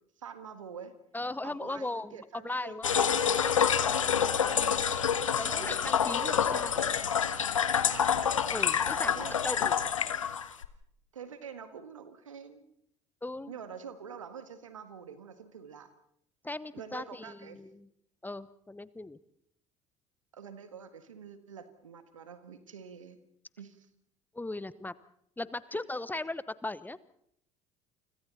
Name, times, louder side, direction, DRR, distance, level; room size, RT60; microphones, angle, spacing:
voice 1, 0.2-0.9 1.4-3.6 4.0-5.2 5.5-5.8 6.2-6.3 7.9-8.3 9.0-9.5 9.8-9.9 11.1-12.6 13.5-15.9 16.7-17.6 20.3-23.2 23.6-23.9 25.7-25.8, right 7 dB, 85° right, 11 dB, 1.7 m, -46 dB
voice 2, 1.1-2.8 4.0-4.2 5.4-6.8 8.5-9.1 9.4-9.8 13.2-13.5 16.4-17.9 18.2-19.2 24.3-24.9 25.4-27.0, left 2 dB, 10° left, 17 dB, 1.0 m, -38 dB
sound 1, 2.8-10.7, left 8 dB, 85° left, 0.9 m, -27 dB
29.0 x 25.5 x 4.2 m, 0.70 s
figure-of-eight pair, 60°, 16 cm